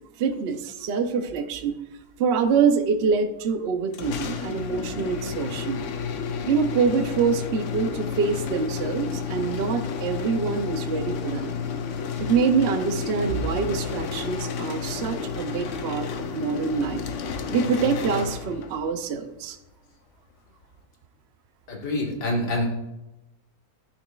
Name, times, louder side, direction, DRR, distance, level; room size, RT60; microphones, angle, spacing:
voice 1, 0.2-1.8 2.2-5.8 6.5-11.5 12.2-17.1 17.5-19.6, right 5 dB, 70° right, 8 dB, 0.6 m, -25 dB
sound 1, 3.9-18.9, left 6 dB, 65° left, 0.8 m, -31 dB
voice 2, 21.7-22.7, left 1 dB, 85° left, -1 dB, 2.2 m, -26 dB
12.5 x 6.1 x 2.3 m, 0.95 s
omnidirectional pair, 1.8 m